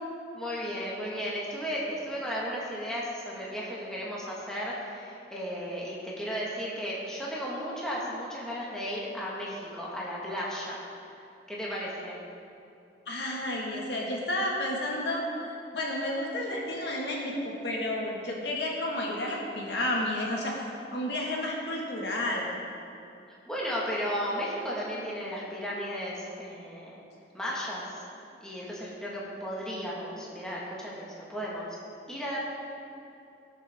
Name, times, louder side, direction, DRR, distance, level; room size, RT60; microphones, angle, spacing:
voice 1, 0.3-10.8 11.5-12.2 23.5-27.0 27.3-28.0 28.4-31.8 32.1-32.4, equal, 5° left, -6 dB, 1.6 m, -34 dB
voice 2, 13.1-15.2 15.7-20.6 20.9-22.5, left 1 dB, 70° left, -2 dB, 1.8 m, -31 dB
18.0 x 6.7 x 3.6 m, 2.7 s
head